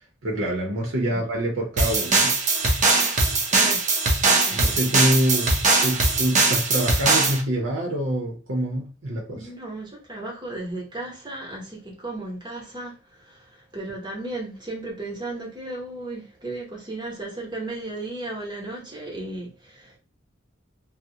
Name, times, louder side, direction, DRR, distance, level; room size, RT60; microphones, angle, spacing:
voice 1, 0.2-2.3 4.5-9.5, right 1 dB, 90° right, 0.7 m, -26 dB
sound 1, 1.8-7.4, right 3 dB, 40° right, 0.5 m, -21 dB
voice 2, 3.5-3.9 4.2-4.8 9.3-20.0, right 2 dB, 25° right, 0.9 m, -35 dB
2.3 x 2.0 x 2.7 m
head